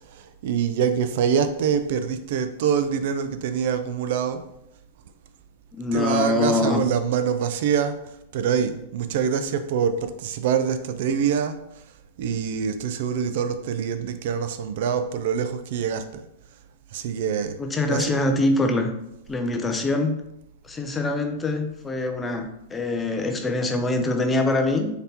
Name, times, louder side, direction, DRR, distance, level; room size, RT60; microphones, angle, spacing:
voice 1, 0.0-4.4 5.9-11.6 12.2-16.2 16.9-17.6 17.9-18.1, right 7 dB, 60° right, 10 dB, 0.4 m, -25 dB
voice 2, 5.7-6.9 17.6-18.9 19.3-20.1 20.6-24.9, left 2 dB, 15° left, 5 dB, 0.5 m, -24 dB
4.0 x 3.4 x 2.8 m, 0.81 s
hypercardioid pair, 125°, 0 cm